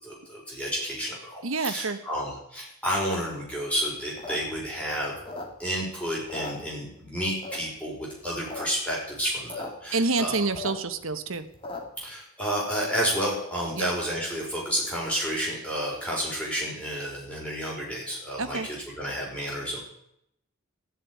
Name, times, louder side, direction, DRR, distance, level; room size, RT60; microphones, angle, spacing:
voice 1, 0.0-5.1 5.6-10.4 12.0-19.8, equal, 5° left, -4 dB, 5.3 m, -31 dB
voice 2, 1.4-2.0 9.9-11.4 13.8-13.9 18.4-18.7, right 3 dB, 75° right, 10 dB, 1.2 m, -27 dB
sound 1, 4.0-5.9 6.2-7.1 7.4-7.9 8.3-8.7 8.9-9.0 9.2-9.7 10.0-12.0, left 2 dB, 25° left, 2.4 m, -38 dB
14.0 x 7.6 x 9.5 m, 0.77 s
head